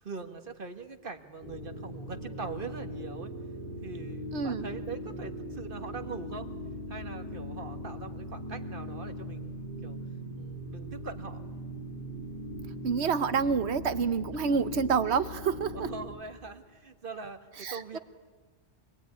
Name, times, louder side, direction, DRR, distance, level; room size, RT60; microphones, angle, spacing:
voice 1, 0.0-3.3 3.8-6.5 6.9-9.5 9.8-10.0 10.3-11.4 14.5-14.6 15.7-18.0, right 4 dB, 45° right, 6 dB, 1.8 m, -42 dB
sound 1, 1.4-16.1, equal, 50° left, 7.7 m, -40 dB
voice 2, 4.3-4.7 12.8-15.9 17.6-18.0, right 6 dB, 65° right, 12 dB, 1.2 m, -28 dB
26.0 x 19.5 x 9.6 m, 1.3 s
omnidirectional pair, 1.2 m